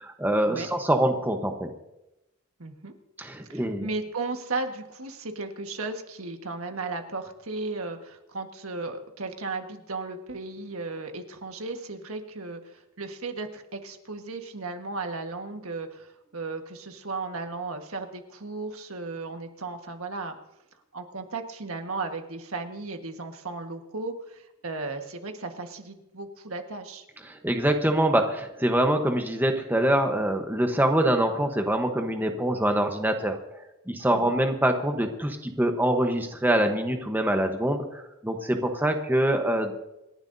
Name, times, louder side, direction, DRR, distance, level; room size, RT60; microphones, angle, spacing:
voice 1, 0.0-1.7 3.2-3.9 27.3-33.4 33.9-39.7, right 1 dB, 10° right, 4 dB, 1.0 m, -24 dB
voice 2, 2.6-2.9 3.5-20.3 20.9-27.0 34.1-34.4, right 3 dB, 75° right, 5 dB, 1.5 m, -35 dB
27.0 x 11.5 x 2.7 m, 0.90 s
head